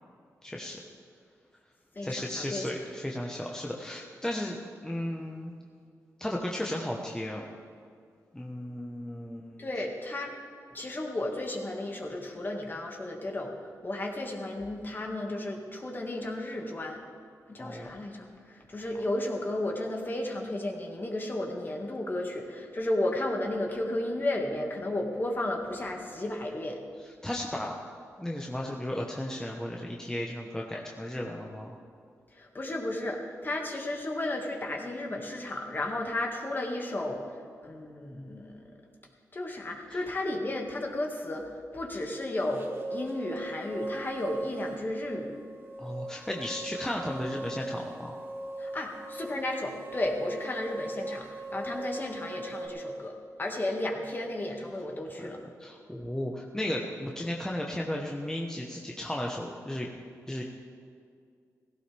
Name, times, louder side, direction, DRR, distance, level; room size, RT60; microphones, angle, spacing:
voice 1, 0.4-0.8 2.0-5.5 6.2-7.4 8.3-9.7 17.6-17.9 27.2-27.8 28.2-31.8 39.9-40.0 45.8-48.2 55.2-55.3 55.6-59.9 60.3-60.4, left 1 dB, 10° left, -1 dB, 1.2 m, -35 dB
voice 2, 2.0-2.7 9.6-10.3 10.7-13.5 13.8-17.0 17.5-26.8 32.3-38.7 39.3-45.3 48.6-55.4, left 1 dB, 35° left, 1 dB, 2.0 m, -33 dB
sound 1, 42.4-52.7, right 2 dB, 40° right, 2.1 m, -39 dB
16.5 x 16.0 x 3.5 m, 2.3 s
cardioid pair, 75°, 6 cm